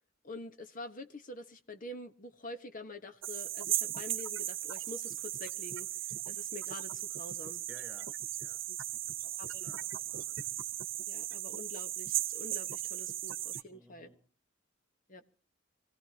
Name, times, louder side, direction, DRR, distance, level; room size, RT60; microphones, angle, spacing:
voice 1, 0.2-7.6 8.7-8.8 9.4-9.7 11.1-14.2 15.1-15.2, left 2 dB, 40° left, 1.3 m, -47 dB
sound 1, 3.2-13.6, right 13 dB, 65° right, 1.0 m, -37 dB
voice 2, 7.7-8.1 8.4-8.6 8.9-10.5 13.7-14.2 15.1-15.2, right 1 dB, ahead, 7.2 m, -58 dB
25.5 x 16.5 x 2.9 m
head